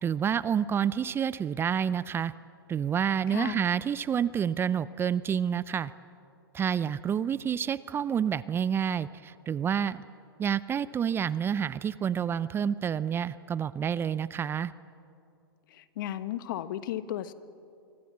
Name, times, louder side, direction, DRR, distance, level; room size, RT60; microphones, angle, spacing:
voice 1, 0.0-2.3 2.7-5.9 6.5-10.0 10.4-14.7, right 8 dB, 20° right, 18 dB, 0.5 m, -28 dB
voice 2, 3.3-3.7 15.7-17.3, left 12 dB, 55° left, 13 dB, 1.2 m, -35 dB
25.0 x 24.5 x 7.4 m, 2.5 s
hypercardioid pair, 110°, 13 cm